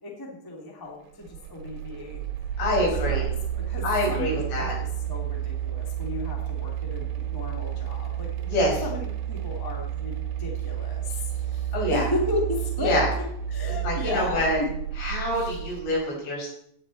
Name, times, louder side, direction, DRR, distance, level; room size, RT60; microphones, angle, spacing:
voice 1, 0.0-2.2 2.5-3.2 3.6-8.5 8.8-13.0 13.5-14.7 15.3-15.7, left 2 dB, 5° left, -1 dB, 1.8 m, -34 dB
sound 1, 1.2-15.9, right 11 dB, 75° right, 3.5 m, -31 dB
voice 2, 2.6-3.3 3.8-4.7 8.5-8.8 11.7-12.1 12.8-13.1 13.6-14.6 15.0-16.5, left 1 dB, 80° left, -3 dB, 7.5 m, -26 dB
16.5 x 10.5 x 4.2 m, 0.72 s
omnidirectional pair, 4.9 m